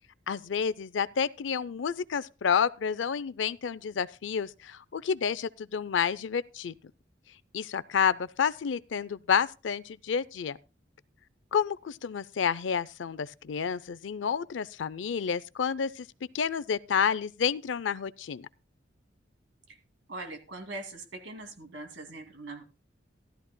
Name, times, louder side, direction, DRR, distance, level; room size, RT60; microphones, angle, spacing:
voice 1, 0.3-6.7 7.5-10.6 11.5-16.1 16.3-18.5, left 7 dB, 80° left, 0.5 m, -29 dB
voice 2, 20.1-22.6, right 2 dB, 80° right, 2.4 m, -41 dB
15.0 x 12.5 x 2.2 m
head